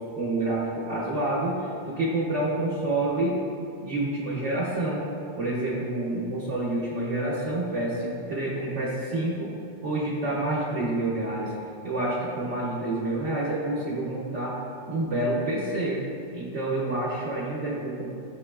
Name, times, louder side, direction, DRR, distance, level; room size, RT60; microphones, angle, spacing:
voice 1, 0.0-3.4 3.8-5.0 5.4-9.5 9.8-11.5 11.8-14.5 14.9-16.0 16.3-18.1, right 2 dB, 85° right, -6 dB, 1.0 m, -28 dB
6.3 x 3.0 x 2.2 m, 2.5 s
omnidirectional pair, 1.2 m